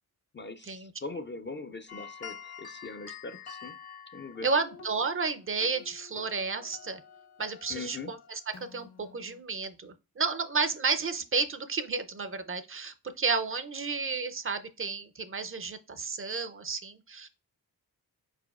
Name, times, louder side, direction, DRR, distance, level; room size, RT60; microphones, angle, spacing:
voice 1, 0.3-3.8 4.1-4.5 7.7-8.1, left 3 dB, 30° left, 0.4 m, -41 dB
sound 1, 1.9-9.4, left 7 dB, 70° left, 1.5 m, -48 dB
voice 2, 4.4-7.0 7.4-8.4 8.7-17.3, right 4 dB, 35° right, 0.5 m, -32 dB
4.9 x 4.5 x 2.3 m
cardioid pair, 80°, 38 cm